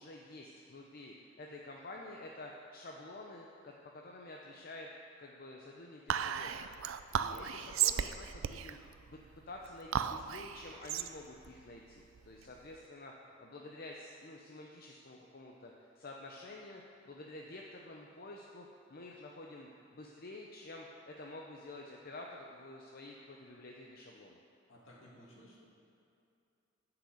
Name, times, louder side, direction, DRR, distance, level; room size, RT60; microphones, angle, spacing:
voice 1, 0.0-4.9 5.2-6.6 7.1-8.8 9.1-9.2 9.5-24.4, left 2 dB, 50° left, -1 dB, 0.7 m, -49 dB
Whispering, 6.1-12.7, right 9 dB, 75° right, 0.4 m, -36 dB
voice 2, 24.7-25.7, equal, 70° left, -4 dB, 2.4 m, -57 dB
10.0 x 5.9 x 7.9 m, 2.6 s
head